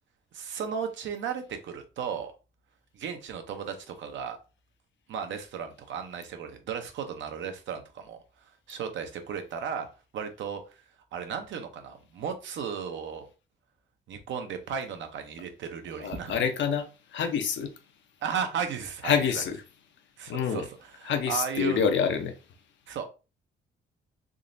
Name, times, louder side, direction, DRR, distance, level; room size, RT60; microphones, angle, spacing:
voice 1, 0.3-2.3 2.9-4.4 5.1-8.2 8.7-9.9 10.1-10.7 11.1-13.3 14.1-16.3 18.2-19.4 20.2-21.8 22.9-23.1, right 7 dB, 70° right, 0.8 m, -35 dB
voice 2, 16.0-17.7 19.0-19.6 20.3-20.6 21.1-22.3, left 7 dB, 70° left, 0.7 m, -27 dB
3.7 x 2.9 x 2.6 m
cardioid pair, 90°, 20 cm